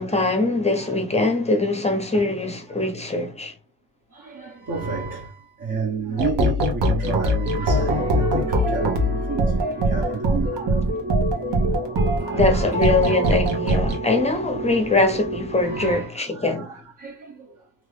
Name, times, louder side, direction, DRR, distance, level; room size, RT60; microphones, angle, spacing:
voice 1, 0.0-3.5 12.3-16.7, left 3 dB, 15° left, 0.6 m, -22 dB
voice 2, 4.1-11.7 12.2-13.5 14.3-14.4 15.6-17.6, right 4 dB, 50° right, 0.9 m, -31 dB
sound 1, 6.2-14.0, right 1 dB, 80° right, 1.1 m, -22 dB
sound 2, 7.7-16.0, right 3 dB, 30° right, 0.7 m, -30 dB
3.0 x 2.5 x 3.2 m
wide cardioid pair, 130°, 41 cm